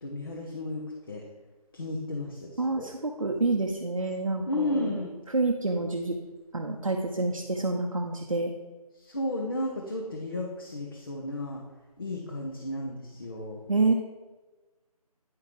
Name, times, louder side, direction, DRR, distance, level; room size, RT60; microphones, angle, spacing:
voice 1, 0.0-1.2 1.7-2.9 4.5-5.1 9.0-11.6 12.0-13.6, left 1 dB, 35° left, -2 dB, 0.9 m, -33 dB
voice 2, 2.6-5.0 5.3-6.2 6.5-8.5 13.7-13.9, right 3 dB, 55° right, 1 dB, 0.8 m, -28 dB
9.4 x 4.7 x 4.8 m, 1.2 s
figure-of-eight pair, 160°, 20 cm